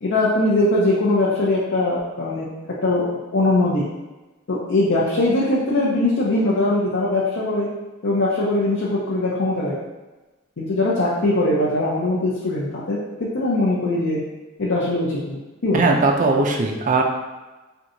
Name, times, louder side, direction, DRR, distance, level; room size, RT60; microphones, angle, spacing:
voice 1, 0.0-2.5 2.8-3.8 4.5-7.7 8.0-9.7 10.6-14.2 14.6-15.8, left 2 dB, 65° left, -6 dB, 0.6 m, -21 dB
voice 2, 15.7-17.0, right 3 dB, 40° right, 2 dB, 0.4 m, -19 dB
4.5 x 2.7 x 2.6 m, 1.1 s
head